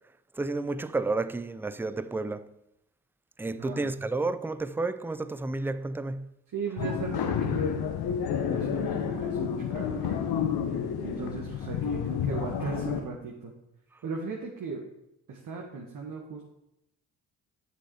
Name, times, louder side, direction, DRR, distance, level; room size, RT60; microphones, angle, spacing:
voice 1, 0.4-2.5 3.4-6.3, right 3 dB, 5° right, 0.3 m, -31 dB
voice 2, 3.5-3.9 6.5-7.8 8.4-10.1 11.0-13.5 14.0-14.8 15.3-16.4, right 4 dB, 50° right, 1.6 m, -37 dB
sound 1, 6.8-13.0, left 7 dB, 65° left, 1.1 m, -30 dB
8.1 x 6.3 x 4.8 m
supercardioid pair, 55°, 41 cm